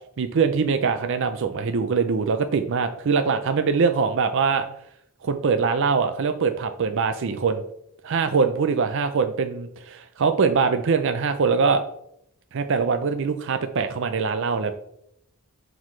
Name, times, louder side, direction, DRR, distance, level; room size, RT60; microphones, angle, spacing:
voice 1, 0.2-4.7 5.2-7.6 8.0-11.8 12.5-14.7, right 5 dB, 60° right, 8 dB, 0.5 m, -23 dB
11.5 x 4.1 x 3.2 m, 0.76 s
head